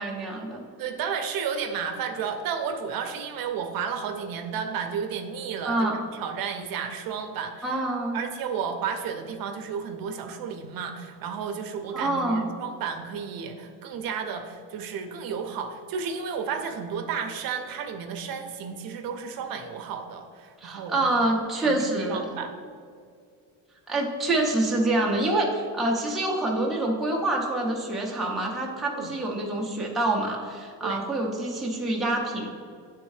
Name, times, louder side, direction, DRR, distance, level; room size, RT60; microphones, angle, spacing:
voice 1, 0.0-0.6 5.6-6.0 7.6-8.2 11.9-12.5 20.6-22.2 23.9-32.5, right 2 dB, ahead, -3 dB, 0.5 m, -26 dB
voice 2, 0.8-7.8 8.1-21.1 21.6-22.5 28.9-29.1 30.8-31.0, right 6 dB, 60° right, 5 dB, 0.6 m, -32 dB
9.8 x 3.5 x 3.1 m, 2.3 s
cardioid pair, 175°, 39 cm